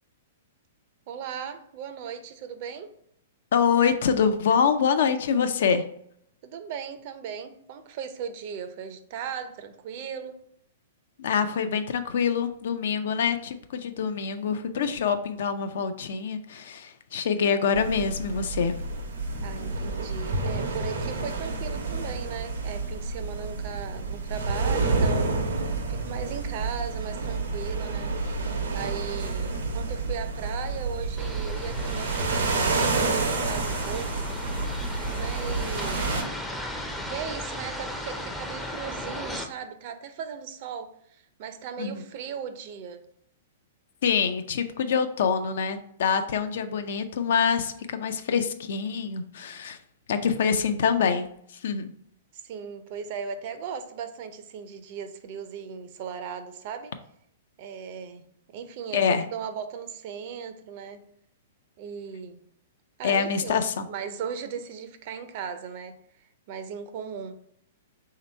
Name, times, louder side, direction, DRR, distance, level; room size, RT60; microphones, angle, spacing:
voice 1, 1.1-2.9 6.4-10.4 19.4-28.1 28.7-34.3 35.1-36.1 37.1-43.0 46.7-46.9 52.3-56.9 57.6-61.0 61.8-62.4 63.0-63.6 63.9-67.4, right 7 dB, 50° right, 9 dB, 0.5 m, -37 dB
voice 2, 3.5-5.8 11.2-18.7 41.8-42.0 44.0-49.8 50.1-51.3 51.5-51.9 58.9-59.2 63.0-63.9, left 6 dB, 70° left, 9 dB, 0.4 m, -25 dB
sound 1, 17.7-36.2, right 3 dB, 90° right, 0.9 m, -29 dB
sound 2, 31.2-39.5, left 1 dB, 5° left, 0.4 m, -36 dB
3.3 x 2.8 x 4.3 m, 0.69 s
hypercardioid pair, 135°, 0 cm